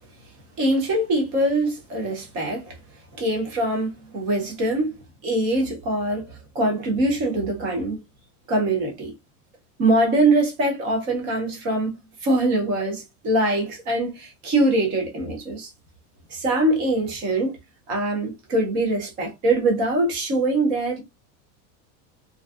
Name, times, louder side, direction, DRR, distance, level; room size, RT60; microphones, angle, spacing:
voice 1, 0.6-2.8 3.2-4.9 5.2-6.3 6.5-8.0 8.5-9.1 9.8-12.0 12.2-15.7 16.3-17.6 17.9-21.0, right 1 dB, 20° right, 0.3 m, -23 dB
2.5 x 2.2 x 2.2 m
supercardioid pair, 170°, 44 cm